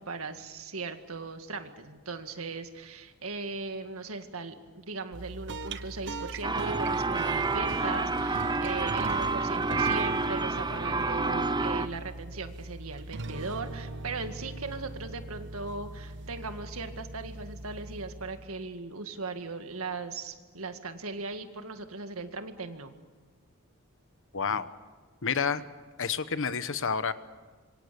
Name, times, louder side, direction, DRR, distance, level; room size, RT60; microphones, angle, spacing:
voice 1, 0.0-22.9, right 3 dB, 75° right, 7 dB, 1.9 m, -38 dB
sound 1, 5.1-18.7, right 2 dB, 55° right, 1.1 m, -41 dB
sound 2, 6.4-11.9, right 3 dB, 20° right, 0.8 m, -29 dB
voice 2, 24.3-24.7 25.2-25.6 26.0-27.1, left 6 dB, 65° left, 13 dB, 1.1 m, -29 dB
26.5 x 24.0 x 7.0 m, 1.4 s
head